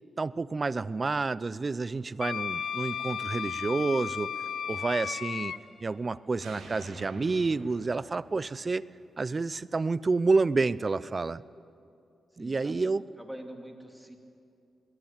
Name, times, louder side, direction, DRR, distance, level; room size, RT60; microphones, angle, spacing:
voice 1, 0.2-4.3 4.7-5.5 5.8-8.8 9.2-11.4 12.4-13.0, right 3 dB, 35° right, 19 dB, 0.6 m, -29 dB
Wind instrument woodwind instrument, 2.2-5.6, left 8 dB, 70° left, 0.4 m, -34 dB
sound 1, 2.3-6.1 6.4-9.4, right 2 dB, 90° right, 4.0 m, -51 dB
voice 2, 12.4-14.2, right 1 dB, 5° right, 4 dB, 2.8 m, -45 dB
21.0 x 16.5 x 9.0 m, 2.6 s
cardioid pair, 70°, 0 cm